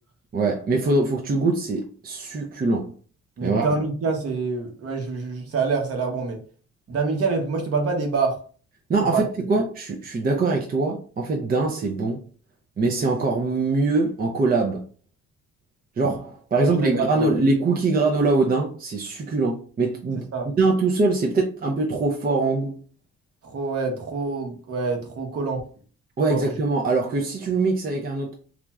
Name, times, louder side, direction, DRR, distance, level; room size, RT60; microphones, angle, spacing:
voice 1, 0.3-2.9 3.4-3.7 8.9-12.2 12.8-14.8 16.0-22.8 26.2-28.3, right 3 dB, 30° right, 0.5 m, -23 dB
voice 2, 3.4-6.4 6.9-8.4 9.1-9.2 16.5-17.3 20.3-20.5 23.4-25.6 26.3-26.4, right 4 dB, 50° right, 0.9 m, -26 dB
3.0 x 2.4 x 2.3 m
cardioid pair, 90°, 30 cm